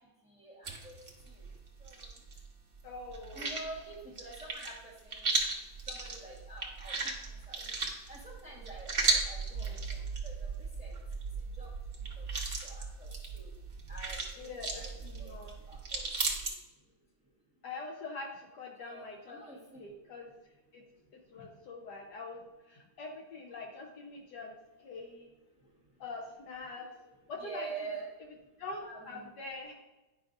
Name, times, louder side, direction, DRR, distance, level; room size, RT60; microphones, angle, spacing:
voice 1, 0.3-1.0 1.8-2.0 3.3-5.3 5.9-7.1 7.5-7.7 8.1-10.5 10.8-10.9 11.6-11.7 12.2-12.3 12.6-13.5 13.9-14.9 15.2-15.3 15.7-16.0 18.8-19.8 27.4-28.1 28.8-29.3, right 3 dB, 5° right, -5 dB, 1.5 m, -47 dB
sound 1, 0.6-2.5 2.7-16.5, right 3 dB, 35° right, 0.8 m, -36 dB
voice 2, 2.8-3.6 9.6-9.9 14.4-15.6 17.6-20.3 20.7-20.8 21.3-25.3 26.0-26.9 27.3-27.9 28.2-29.7, left 3 dB, 65° left, 1 dB, 1.2 m, -44 dB
9.7 x 5.6 x 2.5 m, 1.1 s
omnidirectional pair, 2.1 m